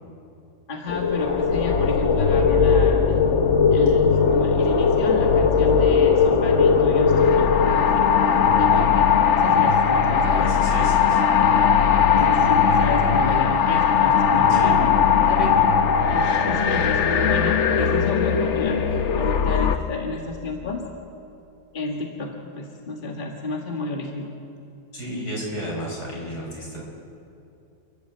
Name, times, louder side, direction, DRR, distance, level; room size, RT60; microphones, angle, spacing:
voice 1, 0.7-3.4 3.7-10.5 12.1-14.9 15.3-15.7 16.1-20.8 21.7-24.3, left 3 dB, 30° left, 0 dB, 1.9 m, -31 dB
sound 1, 0.9-19.8, left 6 dB, 50° left, 1.0 m, -19 dB
voice 2, 10.2-11.3 14.5-14.7 24.9-26.8, equal, 65° left, -4 dB, 7.0 m, -32 dB
29.5 x 11.5 x 8.0 m, 2.7 s
omnidirectional pair, 1.8 m